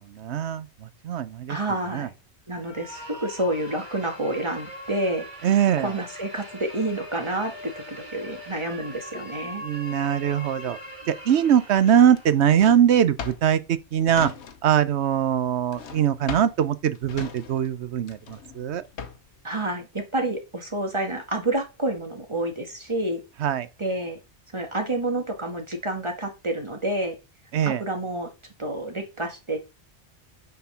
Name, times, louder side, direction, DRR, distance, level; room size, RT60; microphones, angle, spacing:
voice 1, 0.1-1.6 1.9-2.1 5.4-5.9 9.6-10.8 11.1-14.3 14.6-18.8 23.4-23.7 27.5-27.8, right 9 dB, 75° right, 1.0 m, -22 dB
voice 2, 1.5-2.1 2.5-5.3 5.8-9.6 19.4-23.2 23.8-24.2 24.5-27.2 27.7-28.3 28.6-29.6, right 1 dB, 25° right, 1.8 m, -29 dB
sound 1, 2.5-12.4, equal, 45° right, 2.4 m, -41 dB
Drawer open or close, 11.8-14.9 15.1-19.4, left 6 dB, 80° left, 1.2 m, -39 dB
9.4 x 4.4 x 5.6 m
omnidirectional pair, 1.2 m